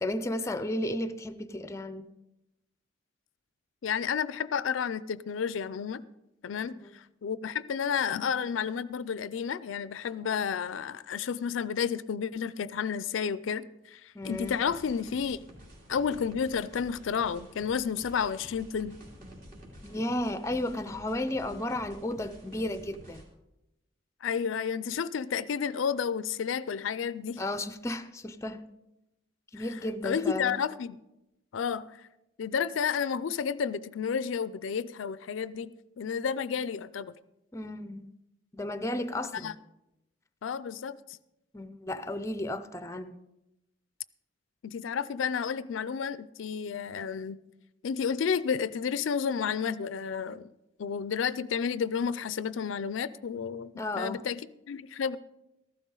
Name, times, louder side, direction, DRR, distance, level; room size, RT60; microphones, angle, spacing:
voice 1, 0.0-2.1 6.8-6.9 14.1-14.6 19.8-23.2 27.4-28.6 29.5-30.6 37.5-38.1 38.5-39.6 41.5-43.2 53.8-54.2, left 1 dB, 15° left, 0.5 m, -33 dB
voice 2, 3.8-6.0 6.4-15.4 15.9-19.0 24.2-27.4 29.6-31.0 31.5-32.0 32.4-35.7 36.0-37.1 39.3-39.5 40.4-41.0 44.6-47.4 47.8-50.5 50.8-54.4 54.7-55.2, left 7 dB, 80° left, 0.4 m, -31 dB
sound 1, 14.2-23.2, equal, 45° right, 2.6 m, -50 dB
14.5 x 12.0 x 3.8 m
head